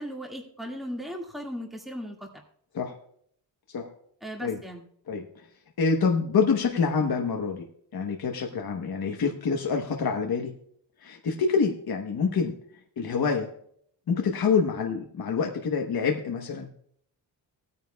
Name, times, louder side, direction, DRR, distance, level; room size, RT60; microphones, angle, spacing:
voice 1, 0.0-2.3 4.2-4.9, equal, ahead, 1 dB, 1.9 m, -37 dB
voice 2, 5.8-7.7 7.9-10.5 11.0-12.5 13.0-13.5 14.1-16.7, left 5 dB, 55° left, 2 dB, 1.1 m, -26 dB
18.0 x 9.6 x 2.3 m, 0.66 s
wide cardioid pair, 120°, 44 cm